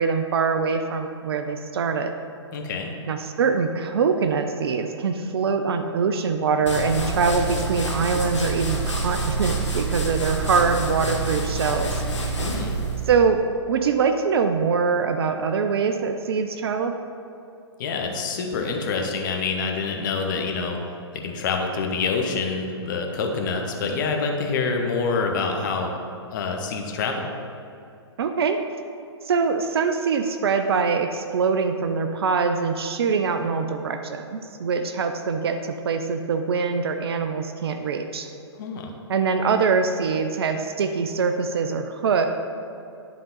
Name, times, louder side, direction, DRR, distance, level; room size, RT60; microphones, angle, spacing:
voice 1, 0.0-2.1 3.1-12.0 13.1-13.4 13.7-16.9 28.2-28.6 29.2-38.3 39.1-42.3, right 5 dB, 60° right, 7 dB, 0.5 m, -23 dB
voice 2, 2.5-2.9 12.4-12.8 17.8-20.8 21.1-26.0 26.3-27.2 38.6-38.9, left 4 dB, 45° left, 3 dB, 1.0 m, -26 dB
sound 1, 6.7-13.2, right 3 dB, 80° left, 1.3 m, -27 dB
10.5 x 3.7 x 4.0 m, 2.7 s
figure-of-eight pair, 125°, 15 cm